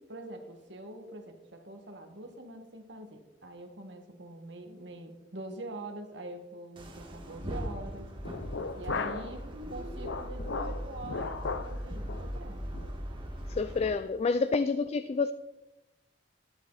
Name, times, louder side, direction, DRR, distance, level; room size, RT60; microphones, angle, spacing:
voice 1, 0.1-8.1 8.8-12.6, right 2 dB, 70° right, 1.6 m, -44 dB
sound 1, 6.8-13.8, equal, 30° right, 1.5 m, -39 dB
sound 2, 8.2-9.4 9.7-11.8 12.1-12.3 12.7-13.0 13.4-13.5 13.8-14.0, left 4 dB, 75° left, 0.7 m, -36 dB
voice 2, 13.5-15.3, left 4 dB, 35° left, 0.3 m, -28 dB
12.0 x 10.5 x 4.0 m
head